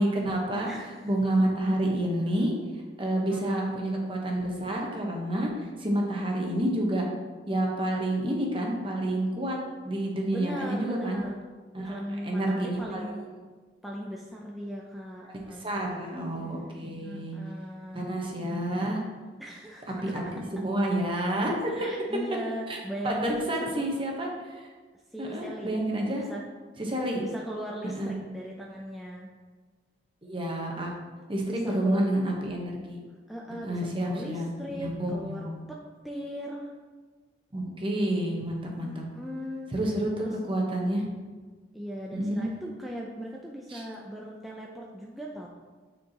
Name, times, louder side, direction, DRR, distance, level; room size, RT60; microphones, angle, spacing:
voice 1, 0.0-0.7 1.0-2.5 3.0-5.5 5.8-7.0 7.5-9.6 9.8-11.2 11.7-13.2 15.6-17.4 17.9-19.0 20.0-21.9 22.7-22.8 23.0-24.3 25.2-26.2 26.8-27.2 28.0-28.1 30.2-30.9 31.3-33.0 33.6-34.5 34.8-35.6 37.5-39.0 39.7-41.0 42.1-42.4 43.7-43.8, right 1 dB, 30° right, -1 dB, 1.0 m, -29 dB
voice 2, 0.7-1.1 3.3-3.8 10.3-11.3 11.8-13.3 13.8-16.3 17.0-18.2 19.4-20.0 21.7-23.8 25.1-25.8 26.1-26.4 27.2-29.3 31.5-32.1 33.3-36.7 38.8-39.7 40.2-40.4 41.7-45.5, equal, ahead, -3 dB, 0.5 m, -38 dB
9.2 x 4.5 x 2.9 m, 1.4 s
head